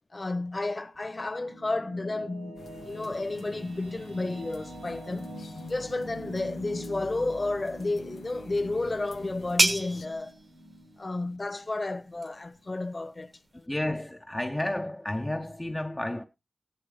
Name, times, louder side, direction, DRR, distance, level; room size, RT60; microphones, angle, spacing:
voice 1, 0.1-2.6 2.8-5.3 5.7-10.3 11.0-13.7, left 2 dB, 35° left, 1.0 m, -32 dB
sound 1, 1.0-12.3, equal, 80° right, 3.8 m, -45 dB
sound 2, 2.6-10.1, left 4 dB, 90° left, 0.8 m, -50 dB
sound 3, 8.2-13.7, right 2 dB, 45° right, 1.1 m, -33 dB
voice 2, 13.7-16.2, left 1 dB, 15° left, 0.6 m, -31 dB
15.0 x 9.1 x 3.2 m
wide cardioid pair, 105°, 0 cm